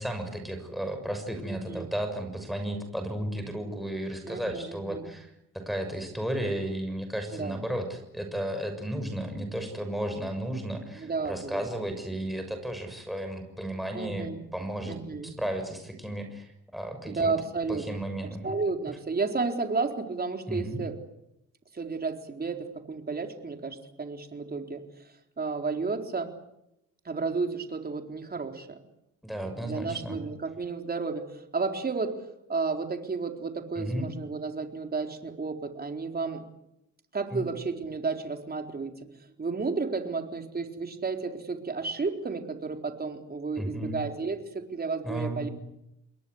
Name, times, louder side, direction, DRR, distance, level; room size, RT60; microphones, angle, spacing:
voice 1, 0.0-15.0 15.2-17.3 17.7-18.5 20.5-20.8 29.2-30.2 33.8-34.1 37.3-37.4 43.6-44.0 45.0-45.5, right 1 dB, ahead, 5 dB, 6.7 m, -34 dB
voice 2, 1.5-1.9 4.3-5.1 7.3-7.6 11.0-11.7 13.9-14.4 14.8-15.3 17.1-18.0 18.4-21.0 21.7-26.3 27.0-28.8 29.6-36.4 37.1-39.1 39.4-45.5, right 4 dB, 30° right, 4 dB, 4.2 m, -32 dB
28.5 x 22.0 x 8.1 m, 0.84 s
cardioid pair, 90°, 30 cm